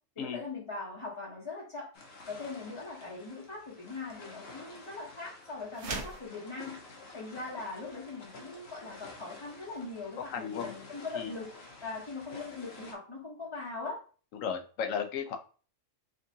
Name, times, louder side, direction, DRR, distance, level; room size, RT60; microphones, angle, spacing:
voice 1, 0.2-1.9 2.3-6.8 7.1-11.5 11.8-14.0, left 3 dB, 30° left, -5 dB, 0.7 m, -41 dB
sound 1, 1.9-12.9, left 3 dB, 55° left, 1.0 m, -50 dB
sound 2, 5.7-6.3, right 3 dB, 65° right, 1.1 m, -37 dB
voice 2, 10.3-10.7 11.1-11.3 14.3-15.4, left 7 dB, 90° left, 5 dB, 1.1 m, -34 dB
3.7 x 3.5 x 2.7 m, 0.38 s
omnidirectional pair, 1.3 m